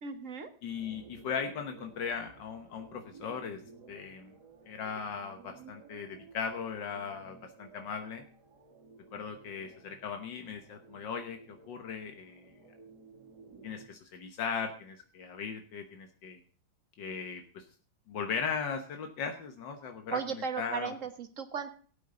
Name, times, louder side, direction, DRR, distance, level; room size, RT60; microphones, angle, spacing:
voice 1, 0.0-0.5 20.1-21.7, right 6 dB, 45° right, 8 dB, 1.6 m, -36 dB
voice 2, 0.6-3.6 3.9-4.3 4.7-8.3 9.1-12.5 13.6-16.4 17.0-17.7 18.1-20.2 20.6-20.9, left 6 dB, 80° left, 5 dB, 1.9 m, -38 dB
sound 1, 0.7-13.9, right 4 dB, 65° right, 2.8 m, -55 dB
17.5 x 8.8 x 3.8 m, 0.41 s
omnidirectional pair, 1.9 m